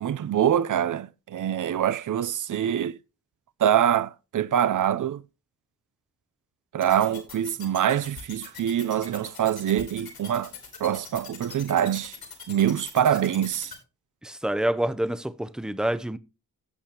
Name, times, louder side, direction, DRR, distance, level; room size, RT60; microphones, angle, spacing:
voice 1, 0.0-3.0 3.6-5.2 6.7-10.5 10.8-12.2 12.5-13.7, right 10 dB, 55° right, 0.6 m, -24 dB
sound 1, 6.8-13.8, left 6 dB, 75° left, 4.2 m, -41 dB
voice 2, 14.2-16.2, right 1 dB, ahead, 0.7 m, -27 dB
16.0 x 6.7 x 2.9 m
cardioid pair, 80°, 37 cm